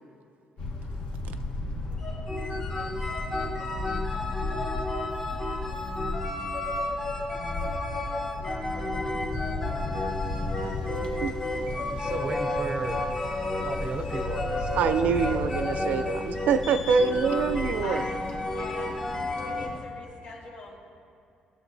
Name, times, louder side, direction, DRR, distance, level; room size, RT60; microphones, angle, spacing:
sound 1, 0.6-19.8, left 2 dB, 50° left, 1.2 m, -35 dB
sound 2, 2.0-19.7, left 2 dB, 20° left, 0.9 m, -32 dB
voice 1, 11.7-13.0 13.6-14.9 15.2-15.5, right 3 dB, 35° right, 4 dB, 0.7 m, -35 dB
voice 2, 14.8-18.0, right 6 dB, 70° right, 9 dB, 0.5 m, -25 dB
voice 3, 17.8-18.2 18.5-18.9 19.3-20.8, left 3 dB, 70° left, -3 dB, 2.1 m, -42 dB
19.5 x 7.2 x 2.7 m, 2.5 s
cardioid pair, 180°, 3 cm